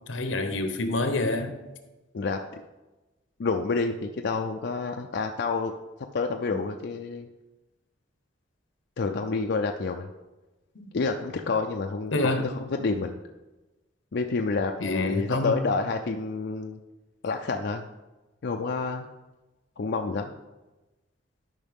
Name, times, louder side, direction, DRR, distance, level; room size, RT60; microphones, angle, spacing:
voice 1, 0.1-1.5 6.5-6.6 10.8-10.9 12.1-12.5 14.8-15.5, left 2 dB, 85° left, 7 dB, 0.9 m, -27 dB
voice 2, 2.1-2.6 3.4-5.7 6.1-7.3 9.0-10.1 10.9-13.1 14.1-16.8 17.2-17.8 18.4-19.1 19.8-20.3, left 4 dB, 60° left, 4 dB, 0.4 m, -28 dB
12.5 x 5.4 x 3.6 m, 1.1 s
head